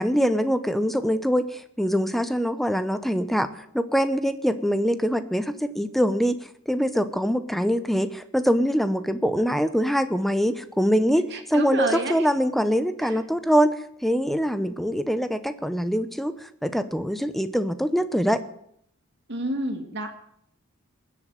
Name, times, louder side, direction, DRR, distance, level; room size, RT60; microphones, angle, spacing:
voice 1, 0.0-3.5 3.7-6.4 6.7-13.8 14.0-16.3 16.6-18.4, equal, ahead, 12 dB, 0.8 m, -23 dB
voice 2, 11.3-12.3 13.0-13.2 19.3-20.1, right 2 dB, 50° right, 6 dB, 2.3 m, -29 dB
20.0 x 7.7 x 9.2 m, 0.72 s
head